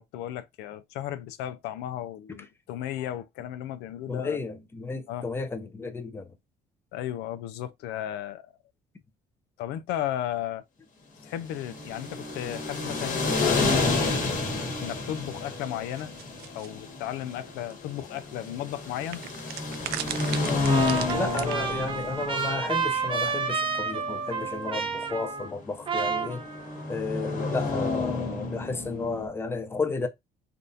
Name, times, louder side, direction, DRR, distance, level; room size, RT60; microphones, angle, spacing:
voice 1, 0.0-4.4 5.1-5.3 6.9-8.5 9.6-10.6 11.2-14.2 14.8-16.1 16.5-19.2, left 12 dB, 90° left, 0.4 m, -35 dB
voice 2, 4.1-6.3 21.1-26.4 26.9-30.1, left 3 dB, 15° left, 0.6 m, -33 dB
sound 1, 11.4-29.3, left 3 dB, 50° left, 1.3 m, -30 dB
plastic seaweed container, 16.0-16.7 17.7-17.8 18.0-18.1 19.1-21.5, right 12 dB, 70° right, 0.4 m, -36 dB
Trumpet, 20.7-25.6 25.9-26.9, right 5 dB, 30° right, 0.8 m, -30 dB
3.5 x 2.5 x 2.6 m
cardioid pair, 110°, 17 cm